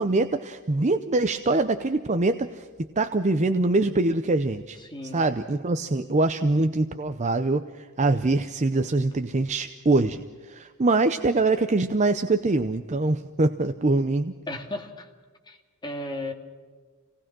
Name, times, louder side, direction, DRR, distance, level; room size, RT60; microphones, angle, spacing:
voice 1, 0.0-2.7 3.0-4.8 5.1-14.3, right 2 dB, 35° right, 9 dB, 0.6 m, -24 dB
voice 2, 4.8-5.3 14.5-15.1 15.5-16.3, left 1 dB, 20° left, 2 dB, 2.2 m, -35 dB
26.5 x 18.5 x 6.1 m, 1.5 s
head